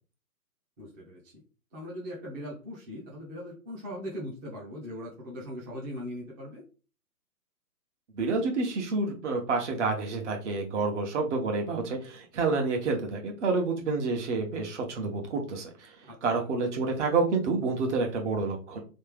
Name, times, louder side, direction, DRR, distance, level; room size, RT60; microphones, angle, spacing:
voice 1, 0.8-1.4 1.7-6.6 16.0-16.5, equal, 15° right, -6 dB, 0.6 m, -40 dB
voice 2, 8.1-15.9 16.2-18.8, right 4 dB, 50° right, 2 dB, 1.2 m, -29 dB
3.2 x 2.8 x 3.4 m, 0.35 s
hypercardioid pair, 145°, 46 cm